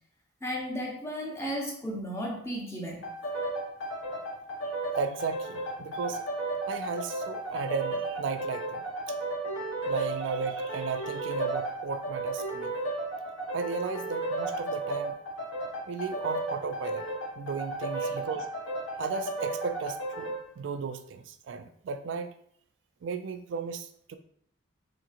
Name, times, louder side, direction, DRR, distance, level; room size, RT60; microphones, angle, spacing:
voice 1, 0.4-3.1 18.0-18.2, equal, 15° left, -2 dB, 0.7 m, -34 dB
sound 1, 3.0-20.4, right 2 dB, 75° left, 0.9 m, -34 dB
voice 2, 4.8-6.2 6.7-9.1 9.8-12.7 13.5-15.2 15.9-17.1 17.4-18.5 19.0-22.3 23.0-24.2, right 5 dB, 65° right, 9 dB, 0.3 m, -35 dB
4.4 x 2.9 x 2.4 m, 0.65 s
head